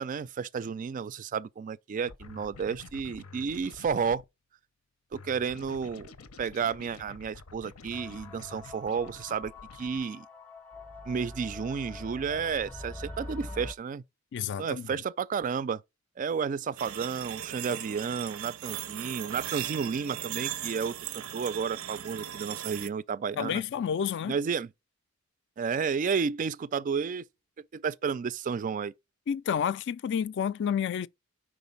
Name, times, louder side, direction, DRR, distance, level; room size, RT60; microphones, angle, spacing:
voice 1, 0.0-4.2 5.1-6.1 6.4-10.3 11.1-14.0 14.6-15.8 16.2-21.0 21.3-23.6 24.2-24.7 25.6-27.3 27.6-28.9, right 6 dB, 40° right, 0.3 m, -32 dB
sound 1, 2.0-4.3 5.1-10.1, left 4 dB, 90° left, 0.7 m, -49 dB
sound 2, 7.9-13.7, left 2 dB, 5° left, 0.6 m, -44 dB
voice 2, 14.3-14.9 23.4-24.4 29.3-31.1, left 8 dB, 55° left, 0.3 m, -30 dB
sound 3, 16.8-22.9, right 11 dB, 85° right, 0.6 m, -38 dB
5.0 x 3.9 x 5.4 m
head